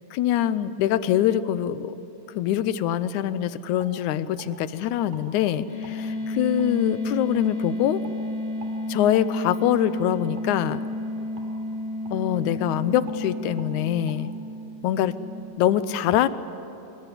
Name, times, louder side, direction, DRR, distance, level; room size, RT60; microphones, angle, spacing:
voice 1, 0.1-2.0 2.3-8.0 8.9-10.8 12.1-14.3 14.8-15.1 15.6-16.3, left 11 dB, 75° left, 14 dB, 2.0 m, -24 dB
sound 1, 2.6-2.8 3.2-3.4 3.8-4.5 5.1-5.3 5.8-6.0 6.6-6.7 7.3-7.5 8.0-8.2 8.6-8.8 9.1-9.3 9.7-9.9 10.3-10.5 11.4-11.5 12.0-12.2 12.5-12.7 13.1-13.2 13.6-13.7 14.1-14.2, right 4 dB, 80° right, 5.2 m, -47 dB
sound 2, 5.7-15.4, left 1 dB, 30° left, 3.7 m, -32 dB
26.0 x 21.0 x 9.9 m, 2.8 s
omnidirectional pair, 3.8 m